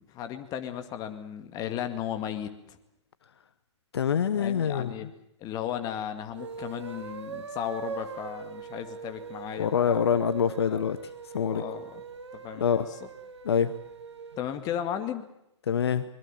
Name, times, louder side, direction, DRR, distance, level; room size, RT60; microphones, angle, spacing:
voice 1, 0.0-2.8 4.3-5.1 5.4-10.1 10.7-10.8 11.5-12.0 12.4-12.6 14.4-15.3, left 10 dB, 25° left, 8 dB, 2.1 m, -35 dB
voice 2, 3.9-4.9 9.6-11.0 11.3-11.6 12.5-12.9 13.4-13.7 15.7-16.0, left 7 dB, 60° left, 14 dB, 1.0 m, -25 dB
sound 1, 6.3-14.4, right 6 dB, 65° right, 2.2 m, -41 dB
24.5 x 22.0 x 7.4 m, 0.84 s
figure-of-eight pair, 120°, 15 cm